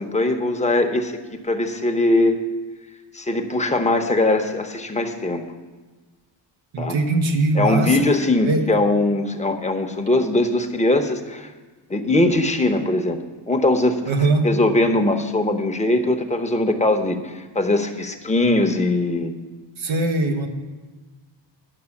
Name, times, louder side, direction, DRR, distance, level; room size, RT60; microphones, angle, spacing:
voice 1, 0.0-2.4 3.1-5.4 6.8-7.0 7.6-11.5 11.9-13.2 13.5-14.0 14.4-19.3, left 2 dB, 15° left, 5 dB, 0.9 m, -21 dB
voice 2, 6.7-8.1 8.4-8.7 14.1-14.5 19.8-20.5, right 2 dB, 90° right, 5 dB, 1.3 m, -21 dB
11.0 x 6.0 x 7.1 m, 1.3 s
cardioid pair, 105°, 46 cm